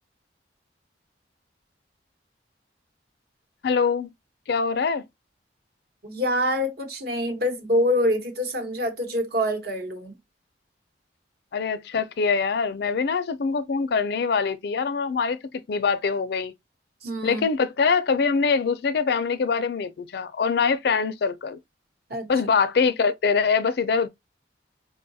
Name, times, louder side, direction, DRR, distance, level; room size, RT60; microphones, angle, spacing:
voice 1, 3.6-4.1 4.5-5.1 11.5-15.4 15.7-16.5 17.2-21.6 22.3-24.1, left 5 dB, 60° left, 0.4 m, -23 dB
voice 2, 6.0-10.1 17.0-17.4 22.1-22.3, equal, 55° right, 1.0 m, -25 dB
4.6 x 2.3 x 2.7 m
head